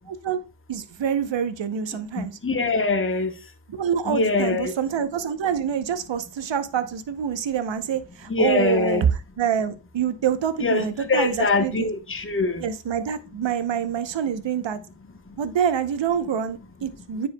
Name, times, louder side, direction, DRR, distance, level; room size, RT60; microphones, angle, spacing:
voice 1, 0.1-0.4 0.7-2.3 3.7-11.9 12.6-14.8 15.4-17.3, right 8 dB, 65° right, 0.8 m, -26 dB
voice 2, 2.2-3.3 4.1-4.7 8.3-9.0 10.6-12.6, left 3 dB, 25° left, 1.1 m, -23 dB
9.2 x 4.7 x 2.2 m
cardioid pair, 50°, 47 cm